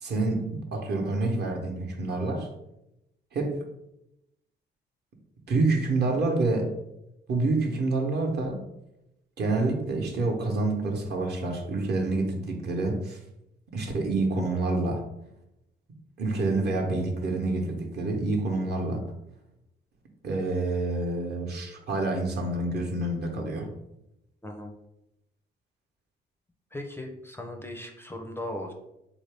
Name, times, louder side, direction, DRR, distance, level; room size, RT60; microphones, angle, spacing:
voice 1, 0.0-2.5 3.3-3.6 5.5-6.7 7.3-8.6 9.4-13.2 13.7-15.0 16.2-19.0 20.2-23.7, right 2 dB, 55° right, 3 dB, 0.8 m, -27 dB
voice 2, 24.4-24.7 26.7-28.7, left 1 dB, 10° left, 3 dB, 0.4 m, -37 dB
3.6 x 2.6 x 3.3 m, 0.86 s
cardioid pair, 90°, 20 cm